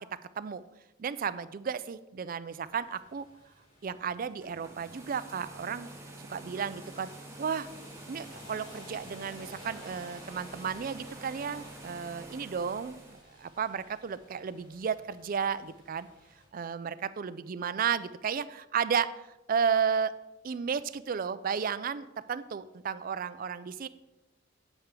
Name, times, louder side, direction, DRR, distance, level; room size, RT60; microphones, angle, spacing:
voice 1, 1.0-3.3 3.8-5.9 6.2-7.1 7.4-7.7 8.1-16.1 16.5-20.1 20.4-23.9, right 6 dB, 45° right, 15 dB, 0.4 m, -33 dB
sound 1, 2.5-16.5, left 1 dB, 45° left, 3.1 m, -54 dB
sound 2, 4.4-13.2, right 2 dB, 15° right, 1.0 m, -48 dB
8.8 x 8.2 x 3.7 m, 0.97 s
head